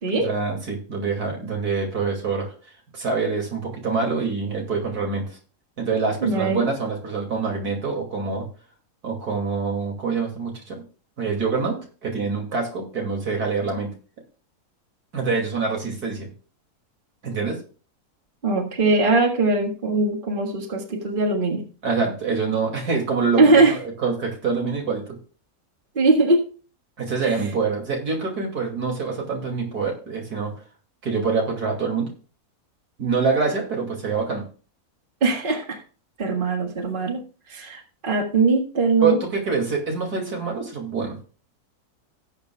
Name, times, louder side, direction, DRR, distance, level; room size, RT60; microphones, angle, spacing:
voice 1, 0.2-2.5 2.9-5.3 5.8-8.4 9.0-10.8 11.2-11.8 12.0-13.9 15.1-16.3 17.2-17.6 21.8-23.4 24.0-25.2 27.0-30.5 31.0-32.1 33.0-34.4 39.0-41.2, right 4 dB, 80° right, 1 dB, 3.1 m, -25 dB
voice 2, 6.2-6.6 18.4-21.7 23.4-23.8 26.0-26.4 27.2-27.5 35.2-35.8 36.2-39.2, right 3 dB, 35° right, 2 dB, 1.8 m, -21 dB
17.0 x 8.1 x 2.3 m, 0.38 s
omnidirectional pair, 1.6 m